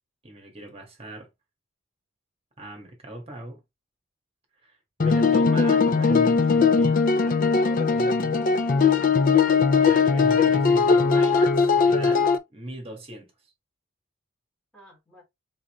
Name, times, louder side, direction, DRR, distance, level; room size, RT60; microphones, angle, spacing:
voice 1, 0.2-1.3 2.6-3.6 4.6-7.2 7.9-8.4 9.8-13.5, right 1 dB, 25° right, 1.6 m, -39 dB
sound 1, 5.0-12.4, left 5 dB, 40° left, 0.4 m, -20 dB
voice 2, 7.5-9.1 14.7-15.2, left 1 dB, 5° left, 2.4 m, -48 dB
4.0 x 3.8 x 3.0 m
head